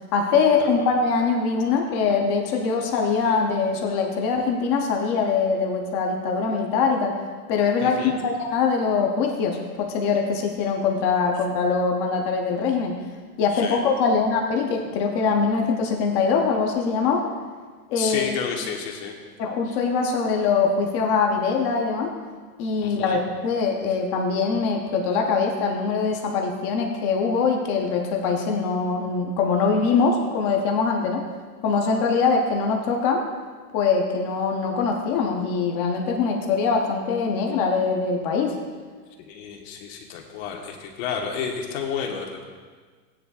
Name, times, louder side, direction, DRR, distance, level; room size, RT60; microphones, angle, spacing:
voice 1, 0.1-7.1 7.5-13.0 13.4-17.2 17.9-18.3 19.4-22.1 22.6-31.2 31.6-33.2 33.7-38.6, left 5 dB, 20° left, 2 dB, 0.4 m, -23 dB
voice 2, 7.8-8.1 13.5-13.8 17.9-19.1 19.6-19.8 22.8-23.2 39.2-42.4, left 6 dB, 40° left, 1 dB, 1.3 m, -31 dB
16.5 x 9.9 x 2.3 m, 1.5 s
supercardioid pair, 155°, 49 cm